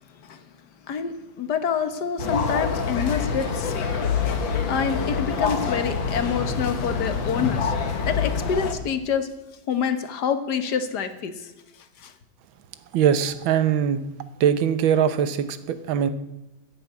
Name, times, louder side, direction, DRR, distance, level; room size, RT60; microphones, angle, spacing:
voice 1, 0.9-3.9 4.3-7.7 8.0-9.3 9.7-11.5 12.0-12.1, left 7 dB, 60° left, 10 dB, 1.6 m, -27 dB
sound 1, 2.2-8.7, left 5 dB, 80° left, 2.2 m, -26 dB
voice 2, 12.9-14.0 14.4-16.1, right 8 dB, 85° right, 12 dB, 1.7 m, -21 dB
11.5 x 10.5 x 8.3 m, 1.0 s
omnidirectional pair, 2.1 m